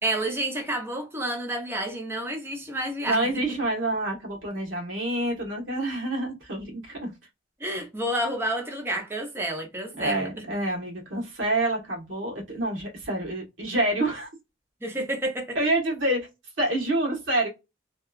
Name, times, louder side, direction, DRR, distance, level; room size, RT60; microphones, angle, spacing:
voice 1, 0.0-3.4 7.6-10.3 14.8-15.6, right 1 dB, 10° right, 0.7 m, -30 dB
voice 2, 3.1-7.1 10.0-14.3 15.5-16.3 16.6-17.5, right 1 dB, 85° right, 1.2 m, -27 dB
2.8 x 2.3 x 2.3 m
head